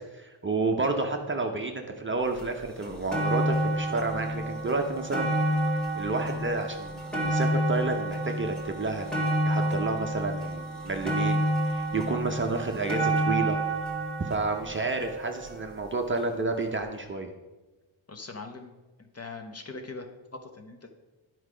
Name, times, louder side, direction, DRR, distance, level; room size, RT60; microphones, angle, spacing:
voice 1, 0.1-5.3 6.0-9.1 9.4-13.6 14.2-17.3, right 3 dB, 25° right, 3 dB, 0.6 m, -30 dB
sound 1, 2.4-2.5 2.8-16.0 16.8-16.9, right 1 dB, ahead, 1.3 m, -29 dB
voice 2, 18.1-18.7 19.0-20.9, left 3 dB, 30° left, 5 dB, 0.7 m, -41 dB
10.0 x 4.6 x 4.9 m, 1.1 s
wide cardioid pair, 155°, 48 cm